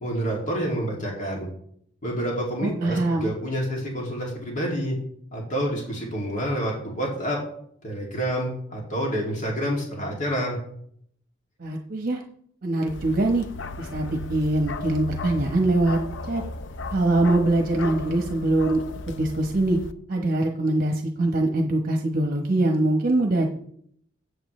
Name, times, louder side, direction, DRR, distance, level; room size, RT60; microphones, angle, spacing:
voice 1, 0.0-1.5 2.0-5.0 5.3-7.4 7.8-10.6, equal, 45° left, -3 dB, 2.6 m, -28 dB
voice 2, 2.6-3.3 11.6-12.2 12.6-13.5 13.8-16.4 16.9-19.8 20.1-23.5, right 2 dB, 50° right, 2 dB, 1.1 m, -23 dB
Bark, 12.9-19.9, left 3 dB, 80° left, 0.6 m, -35 dB
14.5 x 8.1 x 3.2 m, 0.67 s
head